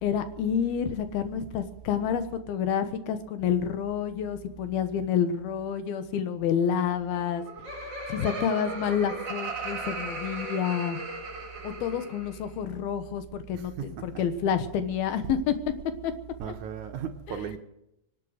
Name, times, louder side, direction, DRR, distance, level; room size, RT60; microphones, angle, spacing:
voice 1, 0.0-7.4 8.1-11.0 11.6-15.5 16.0-16.1 16.5-16.6 17.3-17.6, left 8 dB, 90° left, 3.1 m, -29 dB
Laughter, 7.2-12.4, right 2 dB, 30° right, 4.1 m, -37 dB
voice 2, 16.4-17.6, right 8 dB, 70° right, 2.0 m, -35 dB
25.0 x 8.5 x 6.4 m
omnidirectional pair, 4.2 m